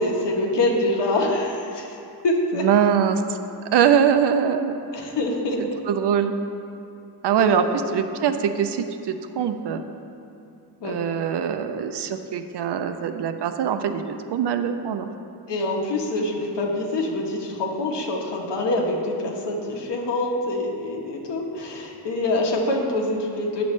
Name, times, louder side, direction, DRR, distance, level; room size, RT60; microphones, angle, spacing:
voice 1, 0.0-2.0 2.2-2.6 4.9-5.8 7.4-7.7 10.8-11.0 15.5-23.6, left 2 dB, 80° left, -1 dB, 1.2 m, -25 dB
voice 2, 2.6-3.2 3.7-4.7 5.6-6.3 7.2-7.6 7.9-9.8 10.8-15.1, right 8 dB, 75° right, 9 dB, 0.6 m, -22 dB
10.0 x 7.0 x 3.2 m, 2.6 s
wide cardioid pair, 140°, 41 cm